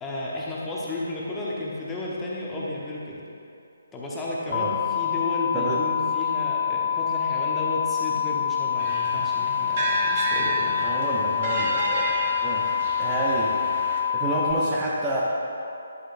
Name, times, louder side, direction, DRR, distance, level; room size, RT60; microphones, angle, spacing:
voice 1, 0.0-3.2 3.9-10.9, left 2 dB, 10° left, -6 dB, 1.2 m, -33 dB
sound 1, 4.5-14.5, left 8 dB, 45° left, 0.5 m, -26 dB
sound 2, 8.8-14.0, right 2 dB, 35° right, 1.2 m, -31 dB
voice 2, 10.8-12.1 12.4-12.7 13.0-13.5 14.1-15.2, right 2 dB, 15° right, -6 dB, 0.8 m, -28 dB
10.5 x 7.7 x 2.6 m, 2.7 s
figure-of-eight pair, 145°, 0 cm